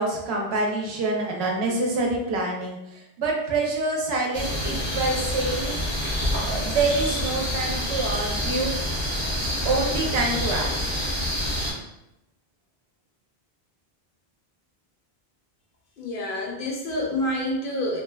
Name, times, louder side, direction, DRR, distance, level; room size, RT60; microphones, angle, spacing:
voice 1, 0.0-2.8 3.2-5.8 6.4-8.7 9.6-10.7, right 2 dB, 85° right, -1 dB, 0.9 m, -26 dB
sound 1, 4.3-11.7, equal, 15° left, 0.6 m, -27 dB
voice 2, 16.0-18.0, left 1 dB, 65° left, -1 dB, 0.7 m, -28 dB
2.9 x 2.1 x 2.2 m, 0.89 s
omnidirectional pair, 1.0 m